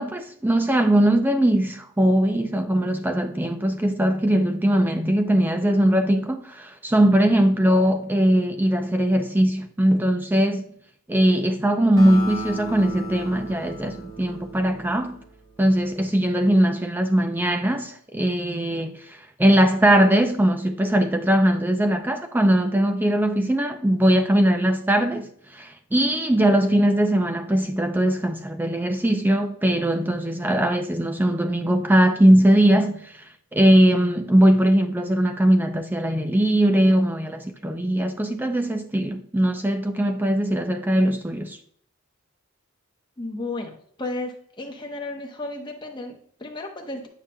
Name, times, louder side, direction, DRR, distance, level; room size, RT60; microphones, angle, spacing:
voice 1, 0.0-10.7 11.1-15.2 15.6-33.2 33.5-41.6, right 1 dB, 10° right, 0.3 m, -20 dB
Acoustic guitar, 12.0-15.6, right 1 dB, 65° right, 2.5 m, -35 dB
voice 2, 43.2-47.1, left 2 dB, 20° left, 0.8 m, -33 dB
8.8 x 5.8 x 2.2 m
head